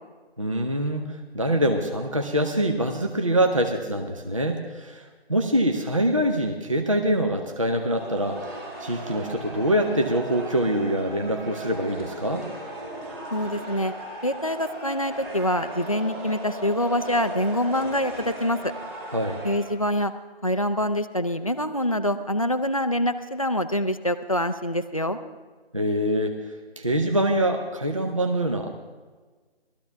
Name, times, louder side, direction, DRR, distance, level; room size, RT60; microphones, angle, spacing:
voice 1, 0.4-1.0 1.3-12.4 19.1-19.4 25.7-26.4 26.8-28.7, right 1 dB, 30° right, 4 dB, 0.6 m, -24 dB
sound 1, 7.9-19.6, right 2 dB, 15° right, 2.1 m, -37 dB
voice 2, 13.3-13.9 14.2-18.7 19.4-20.1 20.4-25.2, left 1 dB, 35° left, 8 dB, 0.5 m, -25 dB
19.0 x 13.0 x 3.4 m, 1.4 s
figure-of-eight pair, 170°, 32 cm